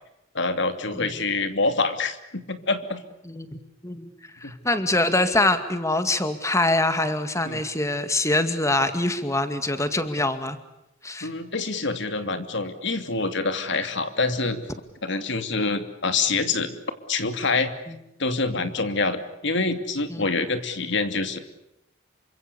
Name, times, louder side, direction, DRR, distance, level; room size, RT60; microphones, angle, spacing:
voice 1, 0.3-3.0 4.4-4.5 7.4-7.6 11.2-14.6 15.0-16.8 17.1-17.7 18.2-21.4, left 3 dB, 60° left, 9 dB, 2.8 m, -26 dB
voice 2, 3.2-4.1 4.4-10.6 11.0-11.3 18.6-18.7 20.1-20.3, left 2 dB, 15° left, 9 dB, 2.2 m, -24 dB
29.0 x 25.5 x 7.0 m, 0.86 s
head